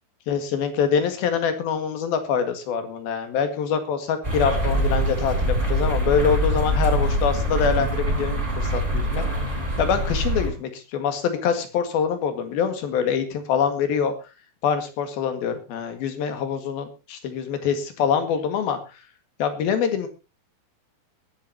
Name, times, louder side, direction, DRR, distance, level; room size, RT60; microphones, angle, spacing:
voice 1, 0.3-9.2 9.8-14.1 14.6-18.8 19.4-20.1, left 7 dB, 75° left, 8 dB, 3.7 m, -25 dB
sound 1, 4.2-10.5, equal, 15° right, 4.0 m, -24 dB
21.5 x 11.5 x 2.9 m, 0.28 s
omnidirectional pair, 4.4 m